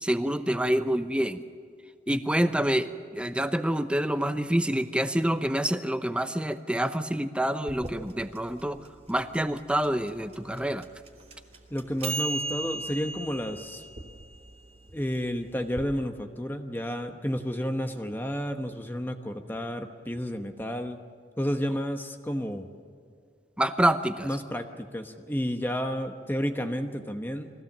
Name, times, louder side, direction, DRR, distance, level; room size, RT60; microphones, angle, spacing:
voice 1, 0.0-1.4 2.1-8.8 9.1-10.9 23.6-24.3, right 1 dB, 5° right, 10 dB, 0.8 m, -27 dB
sound 1, 7.7-15.8, right 3 dB, 35° right, 2.7 m, -38 dB
voice 2, 11.7-13.8 14.9-21.0 21.4-22.7 24.2-27.5, equal, 10° left, 5 dB, 1.0 m, -31 dB
23.0 x 16.5 x 7.3 m, 2.3 s
head